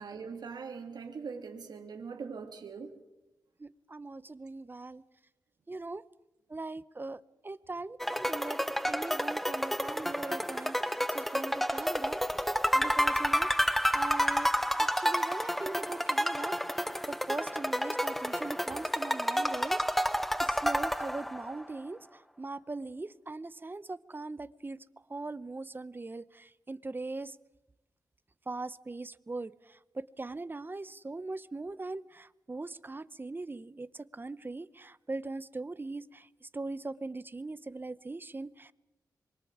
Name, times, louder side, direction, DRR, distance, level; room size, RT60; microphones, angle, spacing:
voice 1, 0.0-2.9, right 5 dB, 80° right, 3 dB, 2.9 m, -41 dB
voice 2, 3.6-5.0 5.7-6.0 6.5-12.5 12.7-13.5 13.9-14.5 14.8-16.6 17.1-20.1 20.4-24.8 25.1-27.3 28.5-38.7, right 3 dB, 30° right, 17 dB, 0.9 m, -40 dB
sound 1, 8.0-21.6, equal, 5° left, 0.8 m, -30 dB
26.0 x 23.5 x 5.0 m, 0.98 s
cardioid pair, 60°, 7 cm